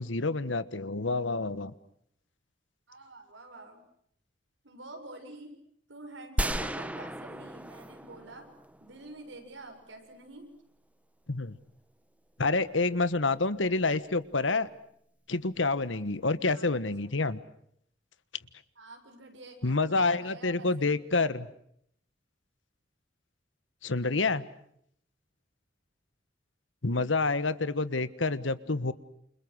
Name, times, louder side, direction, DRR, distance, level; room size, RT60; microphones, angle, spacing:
voice 1, 0.0-1.7 11.3-11.6 12.4-14.7 15.3-17.4 19.6-21.5 23.8-24.4 26.8-28.9, left 3 dB, 80° left, 15 dB, 1.4 m, -28 dB
voice 2, 2.9-3.8 4.6-5.5 5.9-8.5 8.8-10.5 16.5-16.8 18.8-21.2, right 2 dB, 75° right, 4 dB, 7.2 m, -48 dB
sound 1, 6.4-9.3, right 1 dB, 10° right, 1.2 m, -35 dB
29.0 x 27.5 x 6.4 m, 0.69 s
head